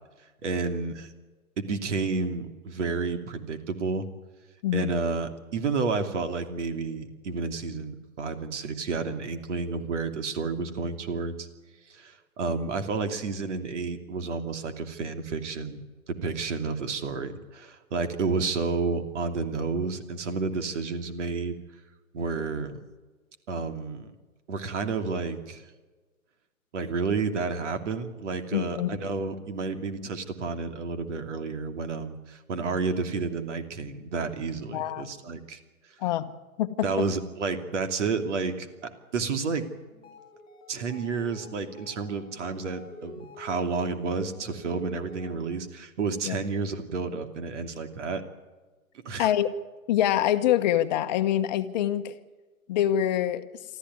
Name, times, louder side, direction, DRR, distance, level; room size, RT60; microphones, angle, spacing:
voice 1, 0.4-1.1 1.6-4.1 4.7-11.5 11.9-15.8 16.1-21.5 22.1-22.8 23.5-24.1 24.5-25.6 26.7-35.6 36.8-39.7 40.7-48.2 49.0-49.3, right 4 dB, 55° right, 8 dB, 2.9 m, -30 dB
voice 2, 4.6-5.0 28.5-28.9 34.7-35.1 36.0-36.3 36.6-36.9 46.3-46.4 49.2-49.5 49.9-52.1 52.7-53.4, left 11 dB, 30° left, 9 dB, 1.2 m, -25 dB
sound 1, 39.9-45.7, left 2 dB, 10° left, 3.6 m, -48 dB
24.5 x 14.5 x 9.6 m, 1.3 s
hypercardioid pair, 145°, 43 cm